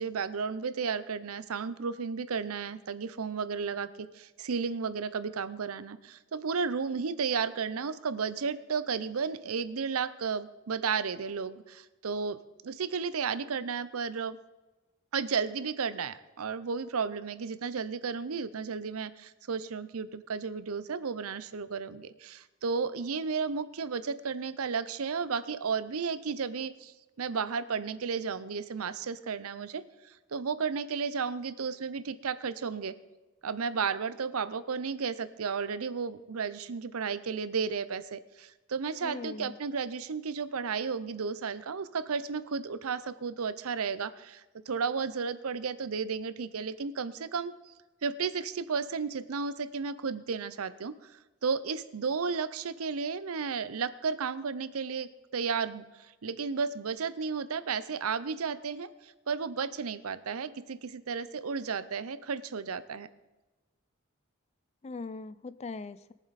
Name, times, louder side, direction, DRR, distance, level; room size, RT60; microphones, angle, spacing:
voice 1, 0.0-14.4 15.1-32.9 33.4-47.7 48.0-51.1 51.4-63.1, right 5 dB, 85° right, 14 dB, 0.6 m, -33 dB
voice 2, 39.0-39.6 64.8-66.1, left 3 dB, 30° left, 15 dB, 0.4 m, -40 dB
21.5 x 7.3 x 4.1 m, 1.1 s
head